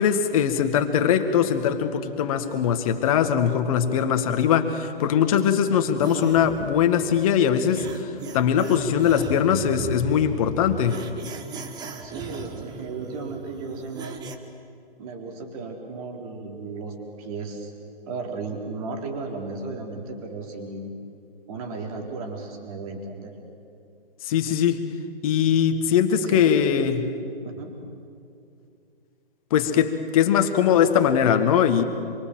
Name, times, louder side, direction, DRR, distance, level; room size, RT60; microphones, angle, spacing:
voice 1, 0.0-11.0 24.2-24.8 25.2-27.1 29.5-31.8, left 8 dB, 35° left, 7 dB, 1.9 m, -21 dB
sound 1, 6.0-14.4, right 5 dB, 15° right, 1.3 m, -38 dB
voice 2, 12.0-14.2 15.0-17.7 18.1-20.9 21.5-23.3 26.3-26.5 27.4-27.7, right 3 dB, 35° right, 2 dB, 4.1 m, -35 dB
26.0 x 24.0 x 7.8 m, 2.5 s
figure-of-eight pair, 130°, 30 cm